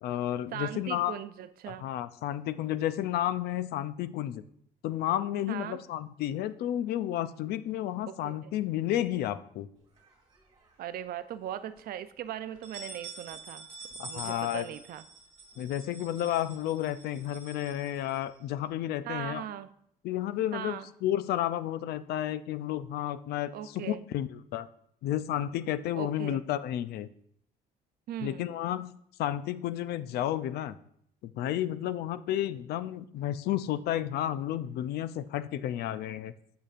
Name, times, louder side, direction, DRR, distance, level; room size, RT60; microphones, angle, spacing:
voice 1, 0.0-1.2 1.7-4.4 4.8-9.7 14.0-14.6 15.6-19.4 20.0-24.7 25.0-27.1 28.2-28.9 29.2-30.8 31.2-36.3, left 12 dB, 70° left, 14 dB, 0.4 m, -32 dB
voice 2, 0.5-1.8 5.5-5.8 8.1-8.5 10.8-13.7 13.9-15.0 19.0-19.7 20.5-20.9 23.5-24.0 25.9-26.4 28.1-28.5, right 11 dB, 60° right, 12 dB, 0.5 m, -39 dB
sound 1, 10.0-10.9 11.3-11.4 11.8-11.9 12.4-18.6, right 3 dB, 30° right, 2.4 m, -47 dB
8.9 x 6.9 x 2.5 m, 0.69 s
cardioid pair, 110°, 17 cm